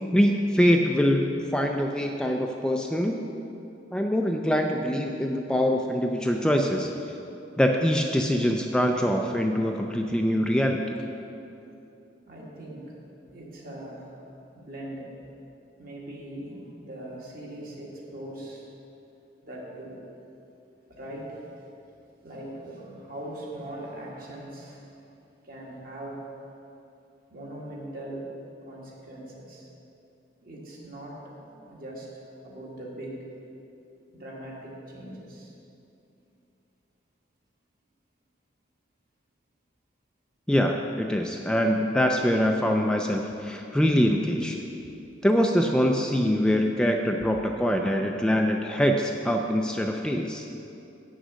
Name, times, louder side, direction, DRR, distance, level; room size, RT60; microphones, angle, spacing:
voice 1, 0.1-3.3 3.9-6.9 7.6-10.9 40.5-44.6 45.2-50.5, equal, 5° left, 2 dB, 0.4 m, -24 dB
voice 2, 12.3-12.9 13.3-14.2 14.5-15.1 15.8-18.7 19.4-20.0 20.9-21.4 22.2-24.8 25.4-26.2 27.3-28.3 28.6-29.7 30.4-32.1 32.4-33.2 34.1-35.5 44.8-45.0, right 1 dB, 55° right, -4 dB, 1.8 m, -40 dB
8.0 x 6.3 x 6.2 m, 2.8 s
head